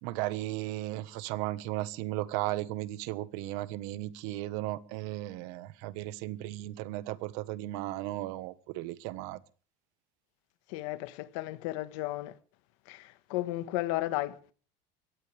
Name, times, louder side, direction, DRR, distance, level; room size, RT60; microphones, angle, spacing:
voice 1, 0.0-9.4, right 16 dB, 65° right, 1.4 m, -35 dB
voice 2, 10.7-12.4 12.9-14.5, left 17 dB, 75° left, 1.5 m, -34 dB
23.0 x 17.5 x 3.5 m
cardioid pair, 175°, 16 cm